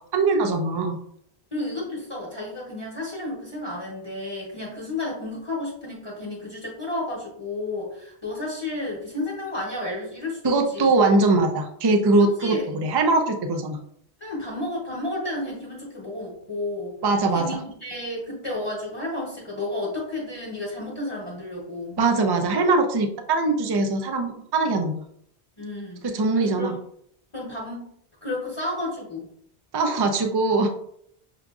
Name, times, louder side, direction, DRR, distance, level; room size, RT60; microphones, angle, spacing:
voice 1, 0.1-1.0 10.4-13.8 17.0-17.4 22.0-25.0 26.0-26.7 29.7-30.7, right 3 dB, 40° right, 4 dB, 0.3 m, -21 dB
voice 2, 1.5-10.9 12.4-12.7 14.2-17.0 17.3-22.0 25.6-26.1 26.4-26.7 27.3-27.9 28.2-29.3, left 2 dB, 30° left, -5 dB, 1.0 m, -32 dB
6.2 x 2.5 x 2.4 m, 0.68 s
omnidirectional pair, 1.1 m